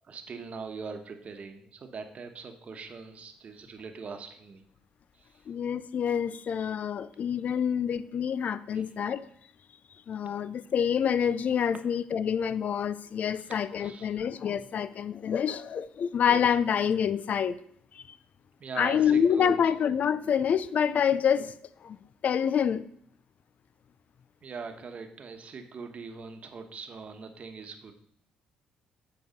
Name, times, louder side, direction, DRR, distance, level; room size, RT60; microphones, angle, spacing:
voice 1, 0.0-4.6 7.4-7.6 8.7-9.0 13.3-14.1 18.6-19.7 24.4-27.9, right 5 dB, 45° right, 1.2 m, -42 dB
voice 2, 5.5-9.2 10.1-17.5 18.8-21.5 21.8-22.0 22.2-22.8, left 8 dB, 55° left, 0.5 m, -27 dB
8.2 x 4.7 x 5.2 m
cardioid pair, 80°, 3 cm